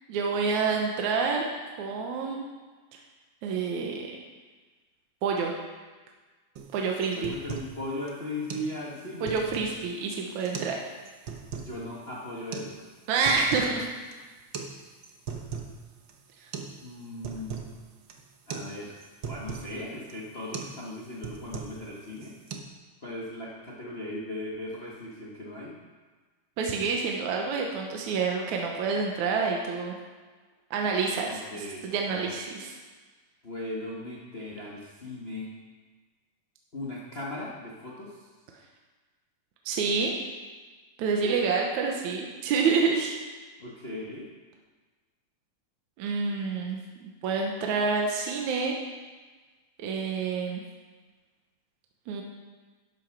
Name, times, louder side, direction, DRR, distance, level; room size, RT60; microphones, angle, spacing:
voice 1, 0.1-1.5 1.8-2.5 3.4-4.1 5.2-5.5 6.7-7.3 9.2-10.8 13.1-13.9 26.6-29.9 30.7-32.7 39.7-40.1 41.0-43.1 46.0-48.8 49.8-50.6 52.1-52.2, right 5 dB, 70° right, 1 dB, 2.2 m, -28 dB
sound 1, 6.6-6.7 7.0-7.8 8.1-8.2 8.5-8.7 9.1-9.8 10.4-10.8 11.1-11.7 12.5-12.7 13.1-13.8 14.0-14.2 14.5-14.7 15.0-15.8 16.1-16.2 16.5-16.8 17.0-17.7 18.1-18.3 18.5-18.7 19.0-19.7 20.1-20.3 20.5-20.8 21.0-21.9 22.2-22.6, right 6 dB, 90° right, 1.0 m, -38 dB
voice 2, 7.1-9.4 11.5-12.8 16.8-17.6 18.5-19.0 19.2-22.4 23.0-25.7 31.3-32.3 33.4-35.5 36.7-38.3 41.2-41.4 43.6-44.3, left 1 dB, 55° left, -4 dB, 0.6 m, -38 dB
12.0 x 8.2 x 5.9 m, 1.4 s
omnidirectional pair, 3.7 m